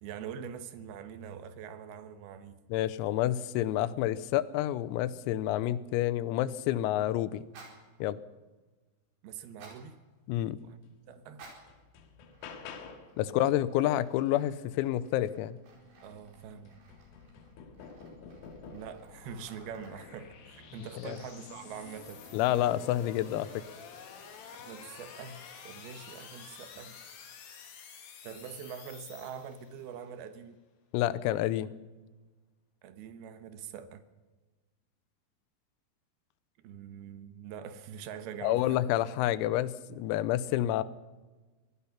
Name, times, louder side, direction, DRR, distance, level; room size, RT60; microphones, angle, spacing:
voice 1, 0.0-2.6 9.2-10.0 10.6-10.8 11.1-11.4 13.3-13.4 16.0-16.8 18.7-22.3 24.6-27.0 28.2-30.6 32.8-34.0 36.6-38.8, right 7 dB, 75° right, 2.4 m, -44 dB
voice 2, 2.7-7.5 8.0-8.2 10.3-10.6 13.2-15.6 21.0-21.2 22.3-23.6 30.9-31.8 38.4-40.8, left 13 dB, 90° left, 3.5 m, -29 dB
sound 1, 7.4-7.9 9.4-9.9 11.3-11.8 12.3-12.8 13.1-20.2 21.0-21.7 22.5-22.8, right 3 dB, 50° right, 6.3 m, -57 dB
sound 2, 10.8-10.9 11.4-13.2 15.6-15.7 16.1-19.1 19.8-20.3 21.4-21.6, left 5 dB, 75° left, 4.1 m, -49 dB
sound 3, 15.5-29.9, left 6 dB, 55° left, 3.3 m, -51 dB
23.5 x 18.5 x 5.9 m
omnidirectional pair, 6.0 m